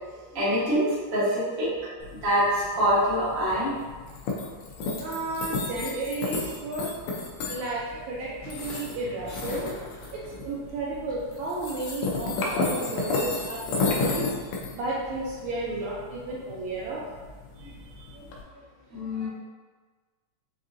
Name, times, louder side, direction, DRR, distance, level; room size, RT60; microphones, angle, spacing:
voice 1, 0.0-3.7 17.6-17.7 18.9-19.3, equal, 50° right, -10 dB, 0.9 m, -25 dB
sound 1, 2.0-18.4, left 3 dB, 85° left, 1.5 m, -33 dB
voice 2, 5.0-6.9 7.5-9.7 10.1-14.3 14.7-17.0, right 2 dB, 80° right, -6 dB, 1.7 m, -33 dB
5.5 x 2.5 x 2.6 m, 1.4 s
omnidirectional pair, 3.7 m